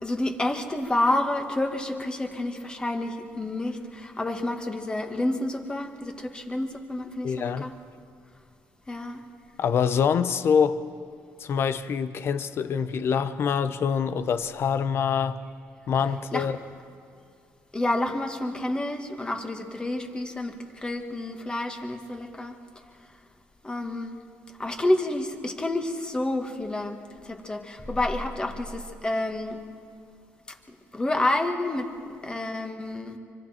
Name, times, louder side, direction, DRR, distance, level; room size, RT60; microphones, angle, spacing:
voice 1, 0.0-7.8 8.9-9.2 16.3-16.5 17.7-22.6 23.6-24.2 24.6-29.7 30.5-31.9 32.2-33.2, left 1 dB, 20° left, 4 dB, 2.0 m, -29 dB
voice 2, 7.2-7.7 9.6-10.8 11.4-15.4 15.9-16.5, left 7 dB, 55° left, 12 dB, 0.9 m, -25 dB
25.5 x 24.5 x 4.5 m, 2.3 s
cardioid pair, 85°, 5 cm